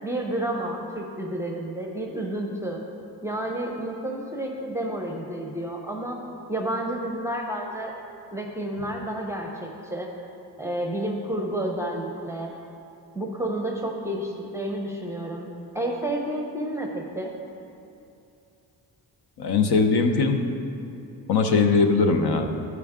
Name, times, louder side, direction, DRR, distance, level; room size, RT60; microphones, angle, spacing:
voice 1, 0.0-2.8 3.2-6.2 6.5-7.9 8.3-10.1 10.6-12.5 13.1-15.5 15.7-17.3, right 1 dB, 5° right, 0 dB, 0.7 m, -30 dB
voice 2, 19.4-20.4 21.3-22.5, left 4 dB, 70° left, 5 dB, 0.9 m, -20 dB
13.0 x 4.8 x 3.6 m, 2.7 s
cardioid pair, 105°, 40 cm